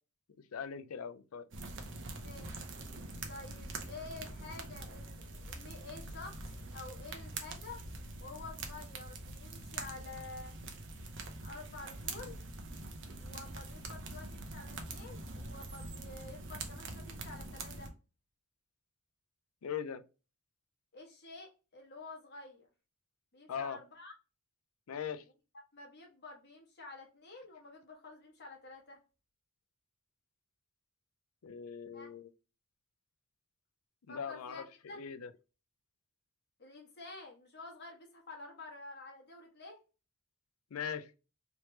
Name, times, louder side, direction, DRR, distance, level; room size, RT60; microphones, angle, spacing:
voice 1, 0.5-1.4 19.6-20.0 23.5-23.8 24.9-25.2 31.4-32.3 34.1-34.6 34.9-35.3 40.7-41.1, left 7 dB, 80° left, 0.5 m, -40 dB
sound 1, 1.5-17.9, right 2 dB, 60° right, 0.7 m, -44 dB
voice 2, 2.1-2.6 3.3-6.4 6.7-7.8 8.2-10.7 11.2-12.4 13.2-17.9 20.9-22.7 23.3-24.1 25.7-29.0 31.9-32.1 34.1-35.0 36.6-39.8, left 3 dB, 50° left, 1.2 m, -50 dB
3.3 x 3.0 x 3.1 m
head